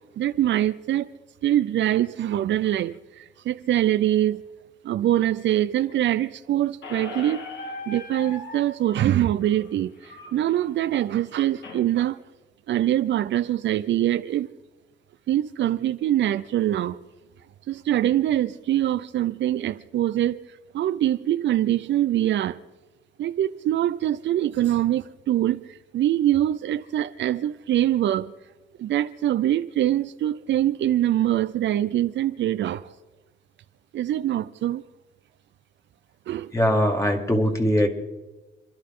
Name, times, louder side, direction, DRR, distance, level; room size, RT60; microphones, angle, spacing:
voice 1, 0.2-1.1 1.4-4.4 4.8-7.5 7.9-12.2 12.7-14.5 15.3-17.0 17.7-20.5 20.7-22.6 23.2-28.3 28.8-32.9 33.9-34.8 36.3-36.5, right 12 dB, 65° right, 0.6 m, -24 dB
Squeak, 6.8-11.8, left 2 dB, 65° left, 2.3 m, -40 dB
voice 2, 36.5-37.9, equal, 15° left, 2.5 m, -21 dB
29.5 x 11.5 x 3.8 m
cardioid pair, 90°, 20 cm